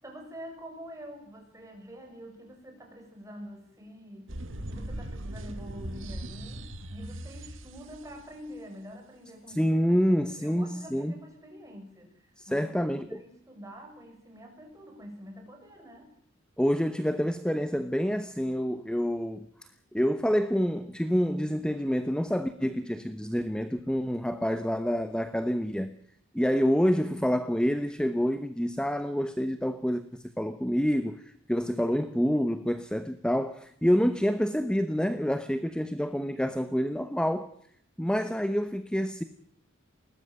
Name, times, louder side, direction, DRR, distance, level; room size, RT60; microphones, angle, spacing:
voice 1, 0.0-16.1, equal, 15° right, 7.2 m, -46 dB
sound 1, 4.3-8.2, right 1 dB, 70° right, 1.9 m, -39 dB
voice 2, 9.6-11.1 12.4-13.2 16.6-19.5 19.9-25.9 26.3-37.5 38.0-39.2, equal, 5° left, 0.9 m, -27 dB
21.0 x 18.5 x 7.7 m
head